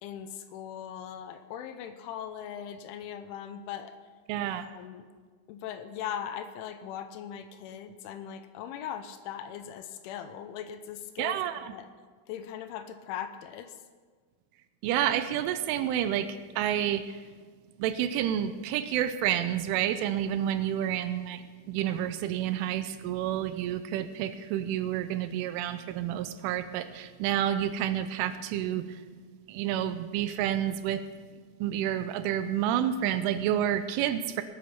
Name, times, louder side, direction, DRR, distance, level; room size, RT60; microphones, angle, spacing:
voice 1, 0.0-4.0 4.6-5.0 5.5-11.9 12.3-13.8, left 9 dB, 85° left, 10 dB, 3.0 m, -40 dB
voice 2, 4.3-4.7 11.2-11.7 14.8-17.2 17.8-29.0 29.5-31.0 31.6-34.4, right 11 dB, 85° right, 11 dB, 3.0 m, -29 dB
19.5 x 8.6 x 5.7 m, 1.5 s
omnidirectional pair, 5.8 m